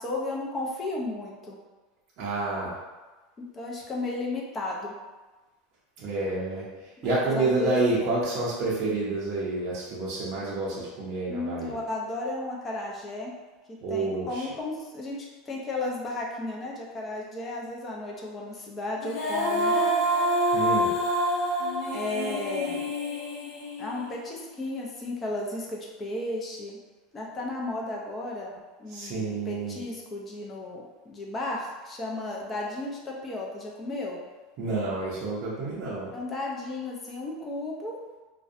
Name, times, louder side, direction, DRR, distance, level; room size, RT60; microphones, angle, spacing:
voice 1, 0.0-1.6 3.4-4.9 7.3-7.8 11.3-13.3 13.7-19.8 21.9-22.9 23.8-26.8 27.1-34.2 36.1-38.0, left 2 dB, 20° left, -2 dB, 0.4 m, -34 dB
voice 2, 2.2-2.8 6.0-11.8 13.8-14.5 20.5-20.9 28.9-29.8 34.6-36.1, right 2 dB, 45° right, -7 dB, 0.5 m, -29 dB
Female singing, 19.0-24.2, equal, 60° left, 0.7 m, -27 dB
2.5 x 2.0 x 2.5 m, 1.2 s
supercardioid pair, 155°, 0 cm